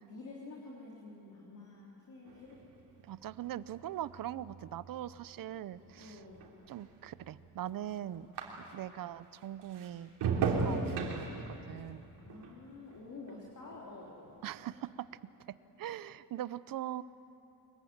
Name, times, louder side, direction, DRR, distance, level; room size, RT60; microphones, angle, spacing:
voice 1, 0.0-2.6 6.0-6.5 12.2-14.2, left 3 dB, 50° left, -3 dB, 3.7 m, -49 dB
sound 1, 2.3-9.0 9.4-13.9 14.2-14.7, right 5 dB, 85° right, 3.4 m, -39 dB
voice 2, 3.0-6.2 6.7-8.3 8.7-10.1 10.4-12.0 14.4-17.0, right 12 dB, 55° right, 16 dB, 0.7 m, -41 dB
24.0 x 22.0 x 9.5 m, 3.0 s
cardioid pair, 145°, 40 cm